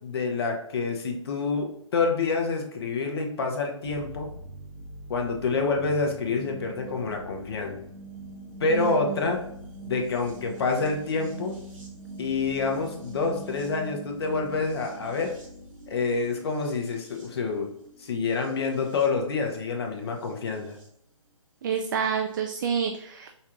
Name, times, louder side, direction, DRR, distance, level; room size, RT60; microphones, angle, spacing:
voice 1, 0.0-4.3 5.1-7.8 8.6-9.4 9.8-11.6 12.2-15.3 15.9-17.7 18.0-20.8, left 4 dB, 50° left, 3 dB, 1.0 m, -27 dB
sound 1, 3.8-20.9 22.0-22.1, right 2 dB, 85° right, 1.6 m, -44 dB
voice 2, 8.7-9.4 21.6-23.3, right 7 dB, 40° right, 4 dB, 0.4 m, -29 dB
5.4 x 2.4 x 3.0 m, 0.71 s
hypercardioid pair, 145°, 16 cm